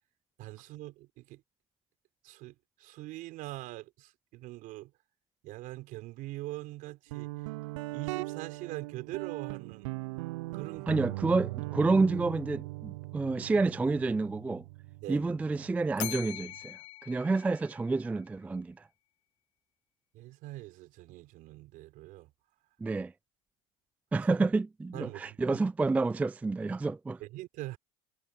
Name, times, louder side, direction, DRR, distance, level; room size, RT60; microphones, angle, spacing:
voice 1, 0.4-1.4 2.2-4.9 5.4-7.3 7.9-9.9 10.5-10.9 15.0-15.3 20.1-22.3 24.9-25.4 27.2-27.8, right 18 dB, 60° right, 4.3 m, -43 dB
Guitar, 7.1-16.6, right 22 dB, 80° right, 0.4 m, -40 dB
voice 2, 10.9-14.6 15.1-18.9 22.8-23.1 24.1-27.2, right 3 dB, 10° right, 0.3 m, -29 dB
Bell, 16.0-18.3, left 20 dB, 80° left, 0.4 m, -42 dB
supercardioid pair, 100°, 16 cm